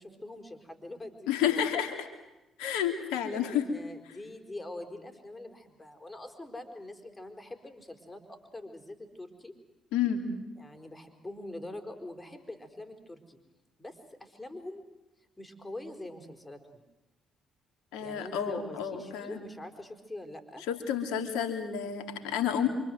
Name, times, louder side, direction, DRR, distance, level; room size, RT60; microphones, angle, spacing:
voice 1, 0.0-1.6 3.3-9.5 10.6-13.4 13.8-14.8 15.4-16.8 18.0-20.6, left 1 dB, 15° left, 6 dB, 4.6 m, -44 dB
voice 2, 1.3-2.1 2.6-3.7 9.9-10.3 17.9-19.4 20.7-22.7, left 9 dB, 65° left, 6 dB, 3.1 m, -30 dB
27.5 x 26.0 x 8.0 m, 0.99 s
figure-of-eight pair, 45°, 0 cm